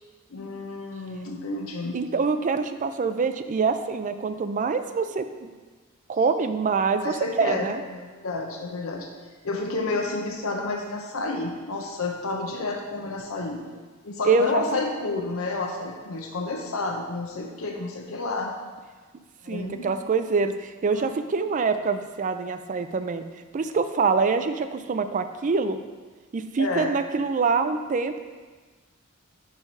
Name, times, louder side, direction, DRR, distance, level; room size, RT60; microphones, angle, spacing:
voice 1, 0.3-2.0 7.0-9.1 9.4-13.8 14.0-18.5 19.4-19.9 20.9-21.1 26.6-27.0, left 3 dB, 80° left, 1 dB, 0.7 m, -30 dB
voice 2, 1.9-5.5 6.1-7.8 14.2-14.8 19.5-23.2 23.5-25.8 26.3-28.2, right 4 dB, 35° right, 9 dB, 0.4 m, -25 dB
5.5 x 4.6 x 5.4 m, 1.4 s
head